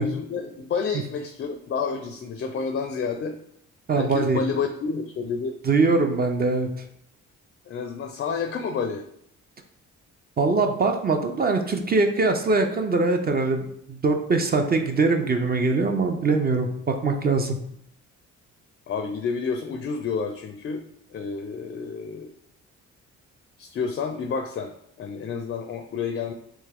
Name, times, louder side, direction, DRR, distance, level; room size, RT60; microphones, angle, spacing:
voice 1, 0.0-3.4 3.9-5.5 7.7-9.0 18.9-20.8 21.1-22.3 23.6-26.3, left 5 dB, 40° left, 6 dB, 0.4 m, -29 dB
voice 2, 3.9-4.4 5.6-6.7 10.4-17.6, right 3 dB, 30° right, 5 dB, 0.5 m, -22 dB
3.4 x 3.1 x 3.4 m, 0.72 s
cardioid pair, 90°, 30 cm